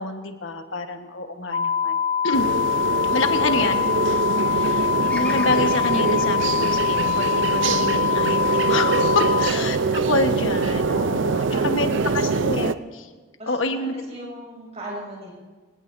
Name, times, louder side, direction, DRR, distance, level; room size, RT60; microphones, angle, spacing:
voice 1, 0.0-2.5 3.1-3.7 4.5-4.9 5.1-11.9 12.1-13.1 13.5-13.9, left 2 dB, 90° left, 6 dB, 1.3 m, -27 dB
voice 2, 1.3-1.7 3.4-3.9 9.4-9.8 11.4-12.3 13.4-15.3, right 1 dB, 35° right, -3 dB, 6.5 m, -36 dB
sound 1, 1.5-9.5, left 7 dB, 35° left, 0.5 m, -23 dB
sound 2, 2.3-12.7, right 4 dB, 75° right, 0.5 m, -24 dB
Bird vocalization bird call bird song, 5.1-9.3 9.9-10.6, left 1 dB, 10° left, 1.8 m, -41 dB
26.0 x 18.0 x 2.7 m, 1.4 s
head